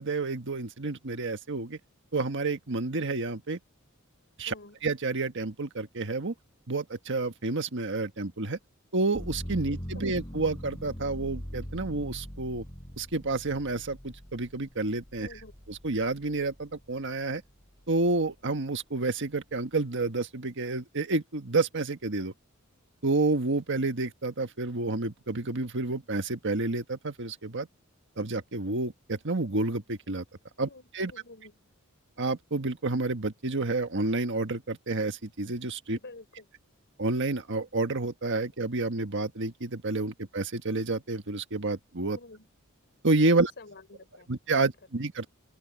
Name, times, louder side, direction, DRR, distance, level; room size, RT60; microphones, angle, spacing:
voice 1, 0.0-1.8 2.1-3.6 4.4-4.5 4.8-6.3 6.7-8.6 8.9-12.6 13.0-15.3 15.7-17.4 17.9-22.3 23.0-27.7 28.2-30.2 30.6-30.7 30.9-31.1 32.2-36.0 37.0-42.2 43.0-43.5 44.3-45.2, right 3 dB, 60° right, 1.5 m, -29 dB
voice 2, 4.5-4.8 9.9-10.0 15.2-15.5 30.6-31.5 35.9-36.5 42.1-42.5 43.2-44.3 44.6-44.7, left 3 dB, 55° left, 5.2 m, -48 dB
sound 1, 9.1-17.0 17.4-18.2, equal, 20° left, 4.1 m, -42 dB
open air
head